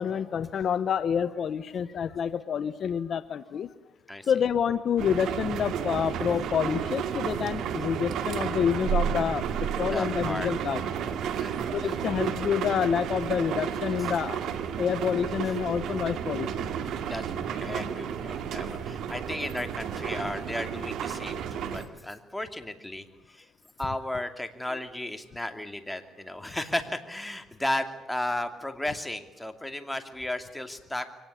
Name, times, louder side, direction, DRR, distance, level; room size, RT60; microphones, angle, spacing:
voice 1, 0.0-3.7 4.3-10.8 11.7-14.4 14.8-16.7, left 7 dB, 60° left, 13 dB, 0.9 m, -28 dB
sound 1, 5.0-21.9, right 8 dB, 80° right, 2.3 m, -32 dB
voice 2, 9.9-10.5 10.8-11.5 11.8-12.0 15.4-15.5 17.0-23.5 23.8-31.1, left 1 dB, 10° left, 7 dB, 2.5 m, -34 dB
24.0 x 18.5 x 9.9 m, 0.96 s
cardioid pair, 90°, 0 cm